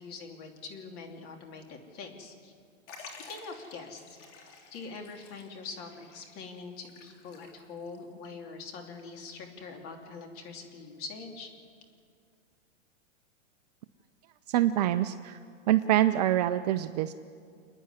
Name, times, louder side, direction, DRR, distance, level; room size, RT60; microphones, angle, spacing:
voice 1, 0.0-2.5 3.0-4.2 4.7-11.5, left 4 dB, 35° left, 3 dB, 2.9 m, -44 dB
Liquid, 2.9-8.0 8.2-8.3 9.3-9.4, left 4 dB, 60° left, 3.8 m, -52 dB
voice 2, 14.5-15.4 15.7-17.1, right 13 dB, 35° right, 10 dB, 0.4 m, -25 dB
29.0 x 9.8 x 9.8 m, 2.2 s
hypercardioid pair, 135°, 39 cm